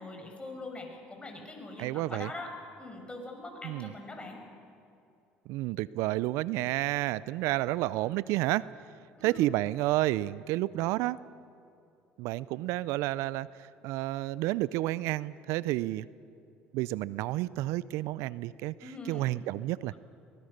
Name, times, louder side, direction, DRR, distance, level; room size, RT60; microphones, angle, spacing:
voice 1, 0.0-2.5 2.8-4.4 9.2-9.5 18.8-19.4, left 2 dB, 20° left, 3 dB, 6.0 m, -43 dB
voice 2, 1.8-2.3 3.6-3.9 5.5-8.7 9.2-11.2 12.2-16.1 16.7-18.7 19.1-20.0, right 17 dB, 75° right, 19 dB, 0.5 m, -30 dB
23.5 x 20.0 x 6.6 m, 2.6 s
hypercardioid pair, 70°, 5 cm